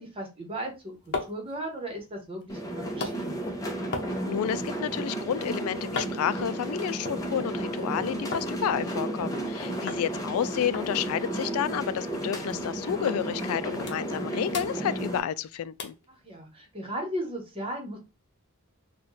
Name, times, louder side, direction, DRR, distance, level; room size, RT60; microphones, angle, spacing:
voice 1, 0.0-3.5 9.5-9.8 16.2-18.0, right 1 dB, 25° right, 1.0 m, -36 dB
sound 1, 0.6-8.5 8.8-9.5 9.9-10.1 10.3-10.4 10.7-12.0 12.3-12.5 13.1-13.2 13.6-14.2 14.5-15.4 15.8-16.1 16.6-16.7, left 4 dB, 55° left, 0.8 m, -39 dB
sound 2, 2.5-15.2, right 1 dB, 15° left, 0.7 m, -33 dB
voice 2, 4.3-15.9, left 9 dB, 75° left, 0.3 m, -30 dB
4.1 x 2.3 x 3.2 m
head